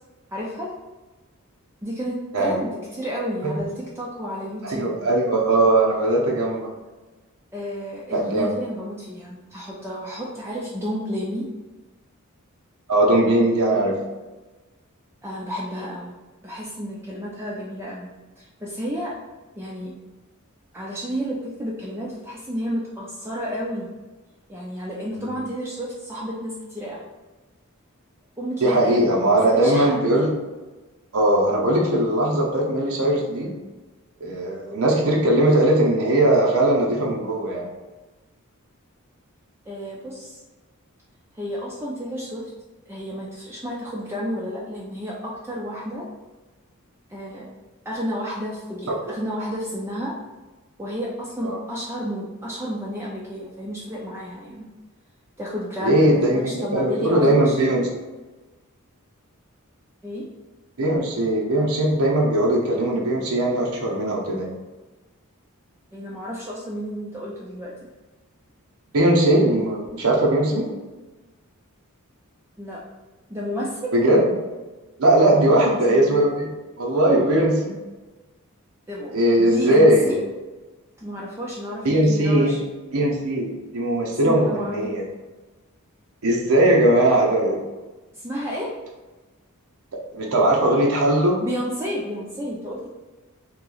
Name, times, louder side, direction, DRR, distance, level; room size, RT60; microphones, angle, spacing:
voice 1, 0.3-0.7 1.8-5.0 7.5-11.5 15.2-16.1 16.4-18.1 18.4-19.2 19.6-20.0 20.7-23.9 24.5-27.0 28.4-30.0 39.7-40.4 41.3-42.5 42.9-46.1 47.1-47.5 47.9-50.2 50.8-54.7 55.4-57.6 60.0-60.3 65.9-67.7 72.6-72.8 73.3-74.0 75.3-76.1 78.9-80.3 81.0-82.6 84.0-84.8 88.1-88.7 91.4-92.9, equal, 10° right, -5 dB, 0.4 m, -31 dB
voice 2, 4.6-6.7 8.1-8.5 12.9-14.0 25.1-25.3 28.6-30.3 31.1-33.5 34.2-37.7 51.4-51.6 55.8-57.9 60.8-64.5 68.9-70.7 73.9-74.2 75.0-76.5 76.8-77.8 79.1-80.1 81.8-82.6 82.9-85.0 86.2-87.6 90.1-91.4, right 1 dB, 75° right, -2 dB, 0.7 m, -19 dB
3.0 x 2.8 x 3.8 m, 1.2 s
head